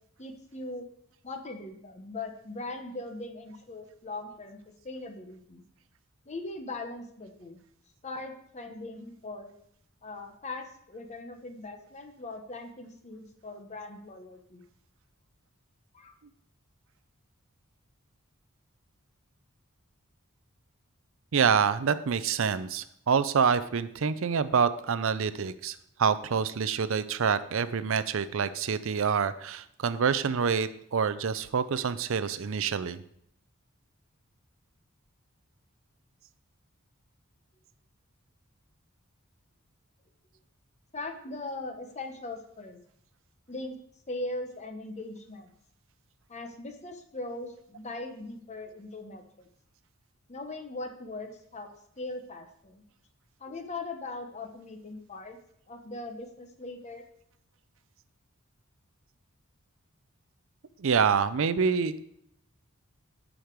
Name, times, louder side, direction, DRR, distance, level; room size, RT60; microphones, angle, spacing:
voice 1, 0.2-0.9 1.2-4.6 4.8-5.6 6.3-7.6 8.0-9.5 10.0-14.7 15.9-16.1 40.9-42.8 43.5-43.7 44.1-45.5 46.3-49.5 50.3-51.7 52.0-52.8 53.4-55.4 55.7-57.0, left 2 dB, 35° left, 5 dB, 1.0 m, -40 dB
voice 2, 21.3-33.0 60.8-62.0, right 6 dB, 65° right, 14 dB, 0.5 m, -27 dB
10.0 x 5.1 x 4.6 m, 0.71 s
head